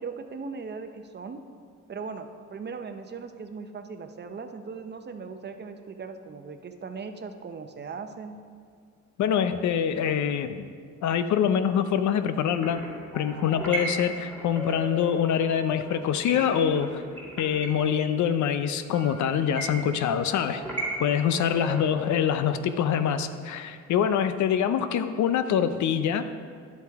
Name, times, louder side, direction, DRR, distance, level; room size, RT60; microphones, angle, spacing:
voice 1, 0.0-1.4 1.9-8.4, right 5 dB, 35° right, 7 dB, 0.7 m, -38 dB
voice 2, 9.2-10.7 11.0-12.8 13.1-17.0 17.4-20.6 21.0-26.3, left 8 dB, 70° left, 10 dB, 0.6 m, -25 dB
sound 1, 12.4-22.1, right 1 dB, 5° left, 2.2 m, -37 dB
10.5 x 8.1 x 3.5 m, 2.1 s
cardioid pair, 90°, 30 cm